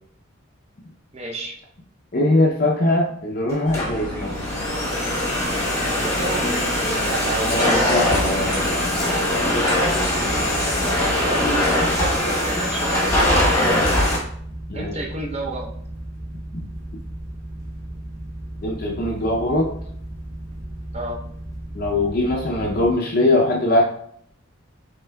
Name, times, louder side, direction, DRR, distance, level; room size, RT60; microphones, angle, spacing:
voice 1, 1.1-1.6 5.9-7.8 10.8-14.0 14.7-15.7 20.9-21.2, right 2 dB, 30° right, 0 dB, 0.6 m, -31 dB
voice 2, 2.1-4.4 7.4-8.8 13.6-13.9 14.7-15.0 16.5-16.7 18.6-19.7 21.7-23.8, left 1 dB, 40° left, -1 dB, 0.5 m, -21 dB
Domestic sounds home sounds, 3.5-14.2, left 1 dB, 10° left, 0.9 m, -22 dB
sound 1, 3.6-11.9, equal, 55° right, 1.7 m, -32 dB
sound 2, 10.1-22.9, right 1 dB, 75° right, 1.8 m, -35 dB
5.5 x 3.7 x 2.2 m, 0.66 s
head